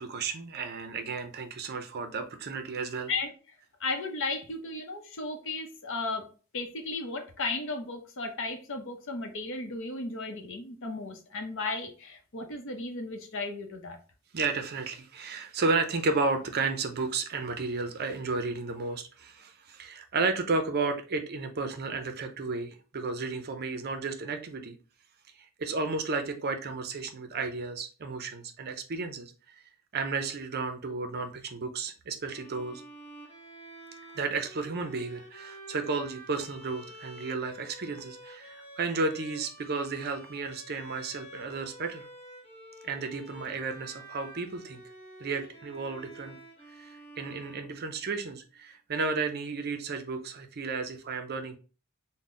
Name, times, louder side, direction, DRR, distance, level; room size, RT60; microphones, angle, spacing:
voice 1, 0.0-3.1 14.3-24.8 25.6-29.6 29.9-32.8 34.1-42.1 42.8-44.8 45.2-46.4 46.8-51.6, right 4 dB, 45° right, 7 dB, 0.5 m, -33 dB
voice 2, 3.8-6.3 6.5-14.0, left 3 dB, 60° left, 5 dB, 0.7 m, -35 dB
Bowed string instrument, 32.2-48.3, right 1 dB, 25° left, 1.2 m, -49 dB
3.8 x 2.1 x 3.7 m, 0.36 s
head